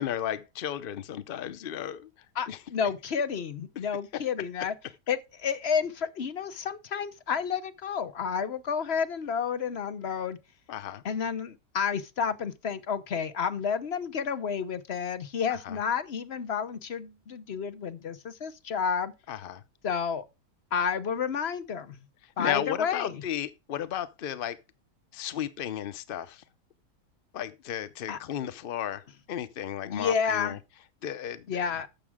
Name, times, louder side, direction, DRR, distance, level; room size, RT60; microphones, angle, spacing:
voice 1, 0.0-2.1 2.5-2.6 10.7-11.0 15.6-15.8 19.3-19.6 22.4-24.6 25.1-26.4 27.3-29.0 29.3-30.6 31.0-31.4, left 10 dB, 75° left, 0.5 m, -34 dB
voice 2, 2.3-4.7 5.1-10.4 11.0-19.1 19.8-20.2 20.7-22.1 22.4-23.2 28.1-28.2 29.9-30.6 31.5-31.9, left 6 dB, 45° left, 1.0 m, -30 dB
12.0 x 7.4 x 3.6 m
omnidirectional pair, 1.8 m